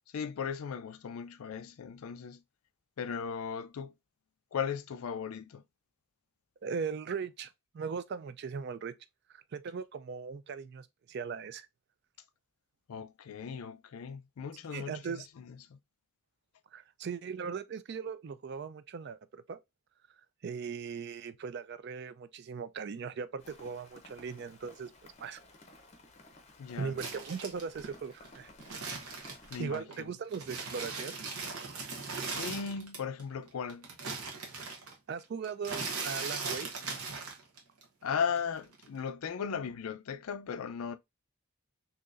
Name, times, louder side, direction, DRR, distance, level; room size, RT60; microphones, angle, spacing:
voice 1, 0.1-2.4 3.0-3.9 4.5-5.6 12.9-15.8 26.6-27.0 29.5-30.1 32.3-33.9 38.0-41.0, left 6 dB, 80° left, 0.4 m, -37 dB
voice 2, 6.6-8.9 9.3-11.7 14.7-15.3 16.7-19.6 20.4-25.4 26.8-28.5 29.6-31.2 31.8-31.9 35.1-36.9, right 6 dB, 50° right, 0.3 m, -39 dB
Rain, 23.4-29.7, left 2 dB, 30° left, 0.6 m, -56 dB
sound 1, 27.0-30.0 30.3-33.2 33.5-37.8 38.1-39.0, right 4 dB, 90° right, 1.1 m, -39 dB
3.9 x 2.8 x 2.5 m
head